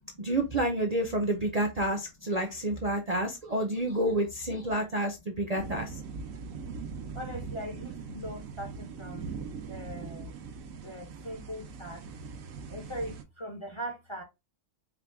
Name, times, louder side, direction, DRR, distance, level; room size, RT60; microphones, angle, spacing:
voice 1, 0.2-5.9, right 1 dB, 40° right, 0.6 m, -29 dB
sound 1, 5.6-13.2, right 5 dB, 80° right, 1.1 m, -41 dB
voice 2, 7.1-9.3 9.7-10.3 10.8-12.0 12.7-14.2, equal, 25° left, 0.7 m, -40 dB
4.9 x 2.2 x 3.4 m
omnidirectional pair, 1.4 m